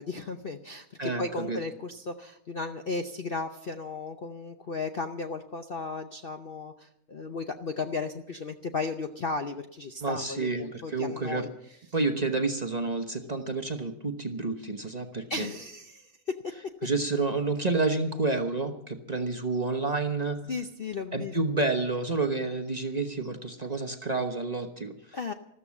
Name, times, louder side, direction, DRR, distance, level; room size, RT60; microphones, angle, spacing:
voice 1, 0.0-11.5 15.3-16.5 20.5-21.3 25.1-25.3, left 4 dB, 50° left, 6 dB, 0.7 m, -35 dB
voice 2, 1.0-1.6 10.0-11.4 11.9-15.5 16.8-20.4 21.1-25.2, right 3 dB, 30° right, 4 dB, 1.0 m, -29 dB
14.0 x 13.5 x 7.2 m, 0.76 s
omnidirectional pair, 1.8 m